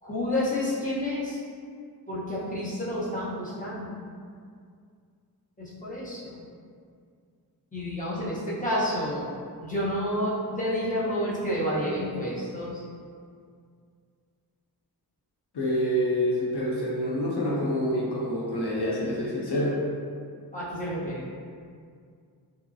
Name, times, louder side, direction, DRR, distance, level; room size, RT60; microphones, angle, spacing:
voice 1, 0.0-1.4 2.1-4.1 5.6-6.4 7.7-9.3 9.6-12.8 20.5-21.3, left 1 dB, 20° left, -9 dB, 0.9 m, -30 dB
voice 2, 15.5-19.8, equal, 75° left, -6 dB, 0.6 m, -27 dB
2.8 x 2.2 x 2.6 m, 2.2 s
wide cardioid pair, 50°, 40 cm